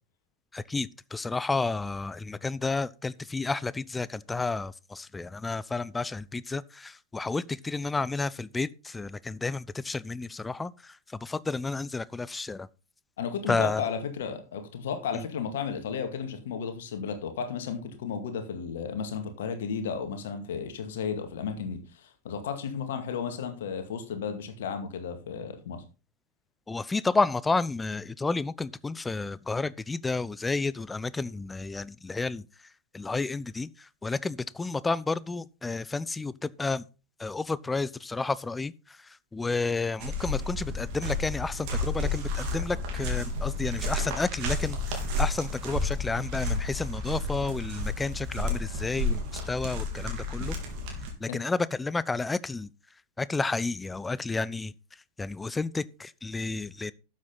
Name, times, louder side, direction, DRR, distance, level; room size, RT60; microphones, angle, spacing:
voice 1, 0.5-12.7 13.5-13.9 26.7-32.4 32.9-36.8 37.2-50.6 51.2-52.7 53.2-54.7 55.2-56.9, left 3 dB, 10° left, 0.5 m, -31 dB
voice 2, 13.2-25.8 51.3-51.4, left 6 dB, 60° left, 2.1 m, -34 dB
sound 1, 40.0-51.1, left 2 dB, 45° right, 3.6 m, -31 dB
12.5 x 7.7 x 3.9 m
figure-of-eight pair, 90°, 0 cm